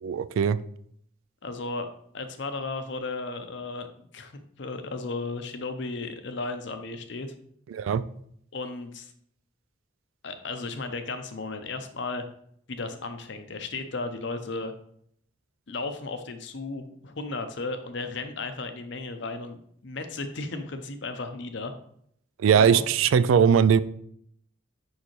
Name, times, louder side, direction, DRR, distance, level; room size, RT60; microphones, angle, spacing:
voice 1, 0.0-0.6 7.7-8.0 22.4-23.8, right 7 dB, 75° right, 15 dB, 0.3 m, -20 dB
voice 2, 1.4-1.9 2.1-7.3 8.5-9.1 10.2-12.3 12.7-14.7 15.7-21.7 22.5-22.8, left 3 dB, 60° left, 8 dB, 0.7 m, -35 dB
6.4 x 5.4 x 3.1 m, 0.67 s
head